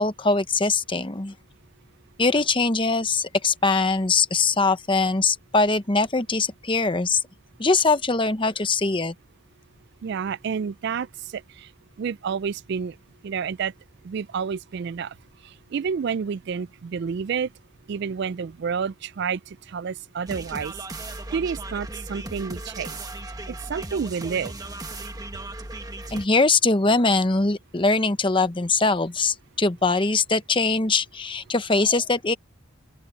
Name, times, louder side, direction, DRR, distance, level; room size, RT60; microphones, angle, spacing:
voice 1, 0.0-1.3 2.2-7.2 7.6-9.1 26.1-32.3, left 3 dB, 25° left, 0.9 m, -22 dB
voice 2, 10.0-11.7 12.0-13.0 13.2-13.7 14.0-15.1 15.4-17.5 17.9-20.7 21.3-22.9 23.7-24.5, right 6 dB, 55° right, 0.3 m, -29 dB
sound 1, 20.3-26.3, right 2 dB, 20° right, 1.6 m, -36 dB
open air
head